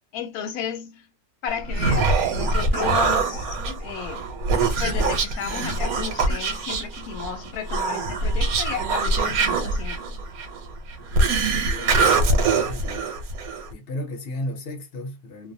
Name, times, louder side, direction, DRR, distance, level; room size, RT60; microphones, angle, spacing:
voice 1, 0.1-1.1 1.4-4.4 4.8-10.1, left 8 dB, 90° left, 1.1 m, -33 dB
Human voice, 1.5-13.7, right 3 dB, 80° right, 1.1 m, -23 dB
voice 2, 11.1-13.1 13.7-15.5, left 1 dB, 50° left, 0.9 m, -35 dB
2.6 x 2.0 x 2.6 m
omnidirectional pair, 1.5 m